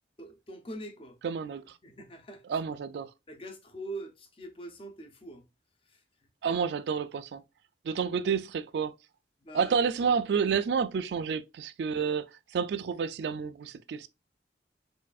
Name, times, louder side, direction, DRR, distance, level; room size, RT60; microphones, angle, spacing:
voice 1, 0.2-1.2 1.8-2.6 3.3-5.5 5.9-6.0 6.4-6.6 9.4-9.7, right 1 dB, 30° left, 0.5 m, -43 dB
voice 2, 1.2-1.6 2.5-3.1 6.4-7.4 7.8-8.9 9.5-12.3 12.5-14.1, right 6 dB, 70° right, 0.3 m, -29 dB
4.6 x 2.5 x 2.3 m
head